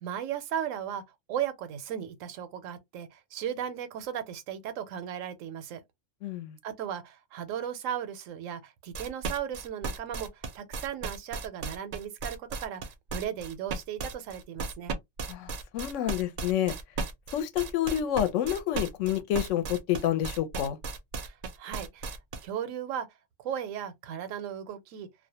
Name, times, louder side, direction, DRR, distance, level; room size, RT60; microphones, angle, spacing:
voice 1, 0.0-1.0 1.3-5.8 6.6-14.9 21.2-23.1 23.4-25.1, right 9 dB, 85° right, 1.0 m, -36 dB
voice 2, 6.2-6.6 15.3-16.7 17.3-20.8, left 11 dB, 75° left, 0.9 m, -28 dB
sound 1, 8.9-22.5, right 4 dB, 60° right, 0.5 m, -35 dB
2.4 x 2.1 x 2.7 m
omnidirectional pair, 1.3 m